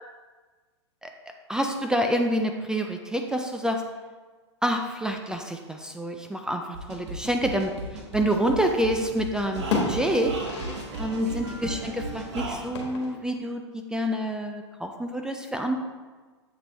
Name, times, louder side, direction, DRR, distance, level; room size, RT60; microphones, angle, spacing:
voice 1, 1.5-3.8 4.6-6.6 6.9-7.7 8.1-10.3 11.0-15.8, equal, 5° right, 4 dB, 0.3 m, -27 dB
sound 1, 6.7-12.6, right 2 dB, 75° right, 1.2 m, -35 dB
sound 2, 9.0-9.2 9.5-11.1 11.4-11.5 12.7-13.4, left 4 dB, 65° left, 1.7 m, -32 dB
7.7 x 4.1 x 3.3 m, 1.4 s
hypercardioid pair, 115°, 15 cm